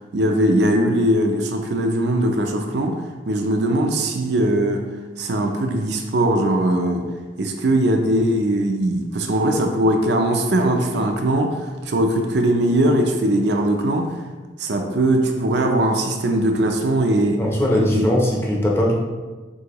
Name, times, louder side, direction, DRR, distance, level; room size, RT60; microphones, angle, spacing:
voice 1, 0.1-3.0 3.3-4.9 5.2-7.1 7.4-14.1 14.6-17.4 17.8-18.1, right 1 dB, 65° right, 3 dB, 0.5 m, -20 dB
voice 2, 17.4-18.9, left 1 dB, 15° left, -3 dB, 0.7 m, -19 dB
6.2 x 2.8 x 3.0 m, 1.3 s
head